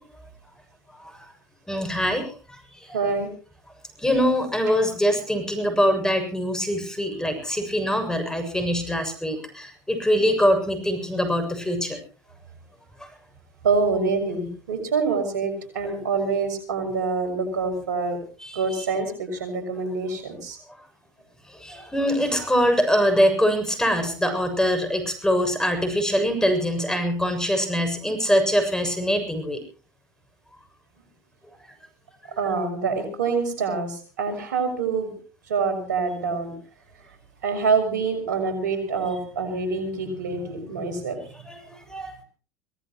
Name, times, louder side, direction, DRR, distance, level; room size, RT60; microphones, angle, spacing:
voice 1, 1.7-2.3 2.9-3.0 4.0-12.0 15.8-16.0 18.4-18.9 21.6-29.6 41.5-42.2, equal, 5° left, 8 dB, 7.1 m, -23 dB
voice 2, 2.9-3.3 13.6-18.2 18.5-20.6 32.4-35.1 35.5-36.5 37.4-41.2, right 4 dB, 85° right, 7 dB, 6.4 m, -26 dB
25.0 x 18.0 x 3.1 m, 0.38 s
hypercardioid pair, 85°, 10 cm